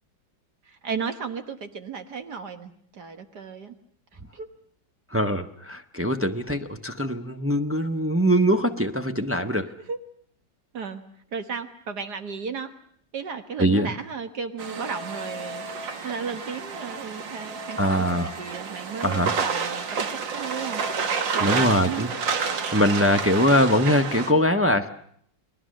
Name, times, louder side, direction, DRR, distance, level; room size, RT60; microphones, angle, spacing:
voice 1, 0.7-3.8 4.3-4.5 9.9-10.0 10.7-11.0 11.3-12.7 13.1-20.8 21.3-22.1, right 6 dB, 60° right, 8 dB, 1.9 m, -34 dB
voice 2, 5.1-9.7 13.6-13.9 17.8-18.3 19.0-19.3 21.4-22.1 22.7-24.9, equal, 10° right, 5 dB, 0.7 m, -22 dB
sound 1, 14.6-24.3, right 5 dB, 75° right, 2.4 m, -30 dB
29.5 x 20.5 x 6.5 m, 0.64 s
omnidirectional pair, 2.0 m